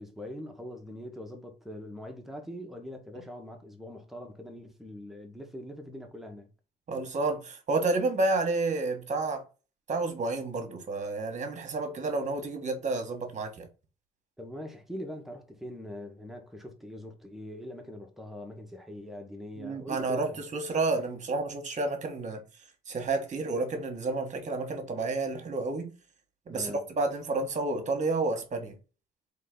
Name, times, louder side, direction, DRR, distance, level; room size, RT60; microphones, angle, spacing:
voice 1, 0.0-6.5 14.4-20.4 26.5-26.8, left 1 dB, ahead, 1.1 m, -42 dB
voice 2, 6.9-9.4 9.9-13.7 19.6-22.4 22.9-25.9 26.5-28.7, right 3 dB, 45° right, 1.4 m, -30 dB
3.7 x 3.4 x 3.8 m
cardioid pair, 105°, 18 cm